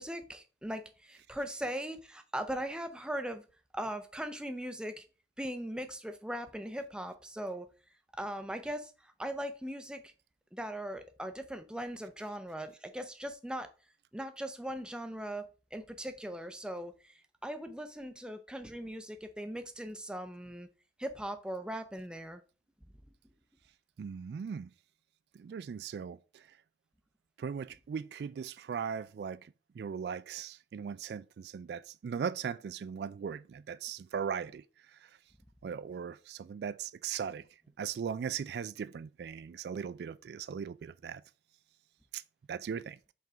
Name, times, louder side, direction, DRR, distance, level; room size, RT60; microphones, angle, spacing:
voice 1, 0.0-3.4 3.7-5.0 5.4-7.7 8.1-10.1 10.5-13.7 14.1-20.7 21.0-22.4, right 1 dB, 5° right, 0.6 m, -39 dB
voice 2, 24.0-24.7 25.3-26.4 27.4-34.6 35.0-35.1 35.6-37.4 37.8-41.2 42.1-42.2 42.5-43.0, right 7 dB, 65° right, 0.3 m, -38 dB
5.4 x 3.7 x 5.1 m
head